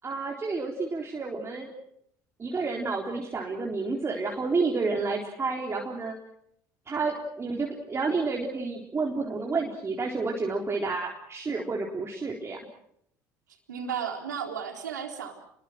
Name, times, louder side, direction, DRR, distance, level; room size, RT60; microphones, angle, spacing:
voice 1, 0.0-1.7 2.4-6.2 6.9-12.6, right 3 dB, 30° right, -1 dB, 4.0 m, -30 dB
voice 2, 13.7-15.3, right 7 dB, 85° right, 3 dB, 4.1 m, -34 dB
29.5 x 22.0 x 6.3 m, 0.73 s
hypercardioid pair, 60°, 10 cm